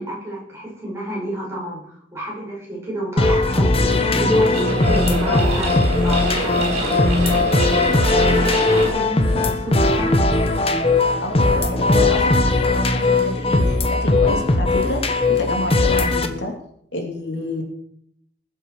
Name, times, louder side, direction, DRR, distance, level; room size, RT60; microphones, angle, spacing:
voice 1, 0.0-7.6 8.1-10.3, right 1 dB, 15° right, -5 dB, 7.7 m, -30 dB
sound 1, 3.2-16.3, left 2 dB, 30° left, 1.3 m, -18 dB
sound 2, 3.8-8.9, right 1 dB, 35° right, 7.8 m, -26 dB
voice 2, 11.2-16.5 16.9-17.6, left 2 dB, 70° left, 1 dB, 3.2 m, -28 dB
19.5 x 7.9 x 6.5 m, 0.72 s
head